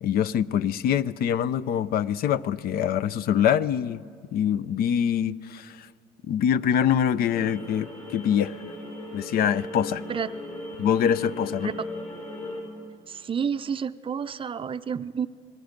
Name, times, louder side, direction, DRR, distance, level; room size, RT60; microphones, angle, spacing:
voice 1, 0.0-5.9 6.2-8.6 9.1-10.0 10.8-11.7, left 9 dB, 65° left, 0.5 m, -24 dB
sound 1, 7.2-12.6, left 2 dB, 35° left, 5.9 m, -37 dB
voice 2, 13.1-15.3, right 7 dB, 30° right, 0.5 m, -30 dB
27.0 x 20.0 x 5.2 m
cardioid pair, 110°, 17 cm